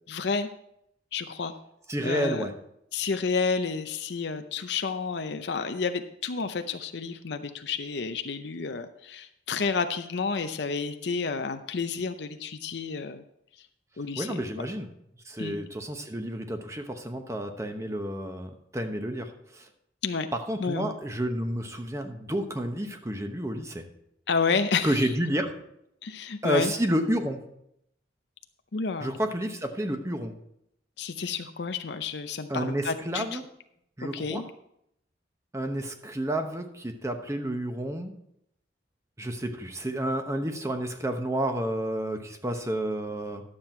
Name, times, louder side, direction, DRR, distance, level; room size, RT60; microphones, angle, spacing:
voice 1, 0.1-0.5 1.1-1.5 2.0-2.5 2.9-13.2 14.0-14.7 15.4-15.6 20.0-20.3 20.6-20.9 24.3-25.1 26.0-26.7 28.7-29.2 31.0-33.4 34.0-34.4, left 5 dB, 65° left, 8 dB, 0.6 m, -30 dB
voice 2, 1.9-2.5 14.2-14.9 15.2-19.6 20.3-23.8 24.8-25.5 26.4-27.4 29.0-30.4 32.5-33.4 34.0-34.4 35.5-38.1 39.2-43.4, right 1 dB, 15° right, 5 dB, 0.9 m, -30 dB
11.5 x 7.6 x 4.4 m, 0.76 s
head